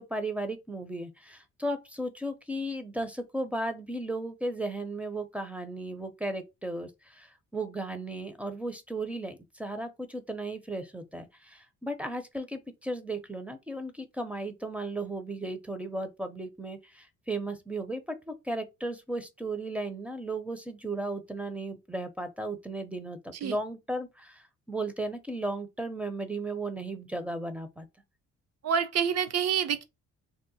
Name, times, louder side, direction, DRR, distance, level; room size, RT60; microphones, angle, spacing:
voice 1, 0.0-27.9, right 2 dB, 5° right, 0.5 m, -35 dB
voice 2, 28.6-29.8, right 7 dB, 55° right, 0.6 m, -27 dB
2.7 x 2.0 x 4.0 m
cardioid pair, 90°, 30 cm